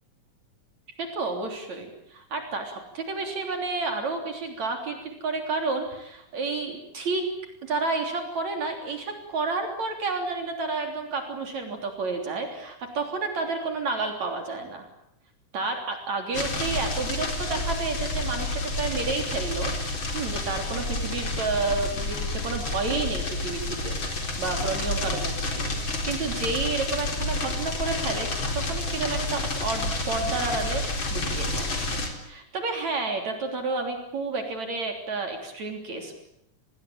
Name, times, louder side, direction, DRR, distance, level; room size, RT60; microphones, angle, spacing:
voice 1, 1.0-7.3 7.6-14.9 15.5-19.7 20.1-24.0 24.4-31.7 32.2-36.1, right 3 dB, 60° right, 4 dB, 4.6 m, -30 dB
sound 1, 16.3-32.1, left 2 dB, 40° left, 4.7 m, -29 dB
28.0 x 21.0 x 8.9 m, 0.77 s
omnidirectional pair, 3.6 m